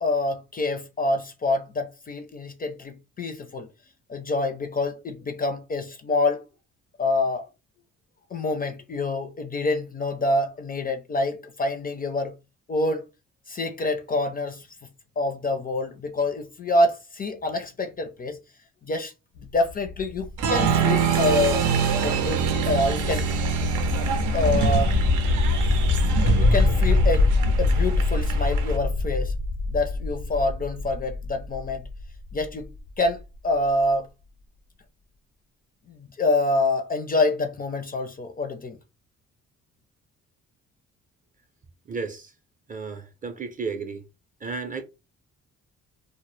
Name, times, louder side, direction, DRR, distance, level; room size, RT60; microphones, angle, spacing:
voice 1, 0.0-3.7 4.1-6.4 7.0-7.5 8.3-12.3 12.7-13.0 13.5-14.7 15.2-18.4 18.8-19.1 19.4-21.6 22.0-23.3 24.3-24.9 26.4-27.3 27.6-29.3 29.7-31.8 32.3-32.7 33.0-34.1 36.0-38.8, left 2 dB, 30° left, 0.4 m, -26 dB
sound 1, 19.4-33.1, left 3 dB, 90° left, 0.5 m, -25 dB
Applause, 20.4-28.8, right 7 dB, 80° right, 0.6 m, -25 dB
voice 2, 41.8-42.3 42.7-44.0 44.4-44.8, right 4 dB, 25° right, 0.5 m, -33 dB
2.0 x 2.0 x 3.1 m
cardioid pair, 90°, 30 cm